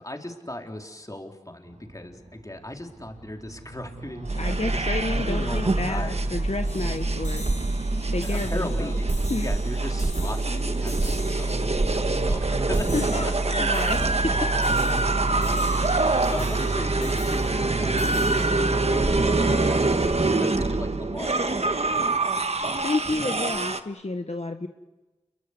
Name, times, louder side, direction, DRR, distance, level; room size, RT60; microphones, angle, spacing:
voice 1, 0.0-6.3 8.2-13.7 14.0-14.7 15.9-22.6, left 1 dB, 30° left, 3 dB, 4.0 m, -38 dB
sound 1, 1.6-9.5, right 1 dB, 80° right, 5.6 m, -35 dB
sound 2, 4.3-23.8, right 3 dB, 60° right, 1.5 m, -24 dB
voice 2, 4.4-7.4 8.1-8.9 9.3-9.5 12.9-13.3 13.6-14.1 22.8-24.7, left 3 dB, 65° left, 5 dB, 1.5 m, -30 dB
sound 3, 6.7-20.1, left 2 dB, 80° left, 5.7 m, -44 dB
29.5 x 23.0 x 8.2 m, 1.1 s
wide cardioid pair, 40°, 12 cm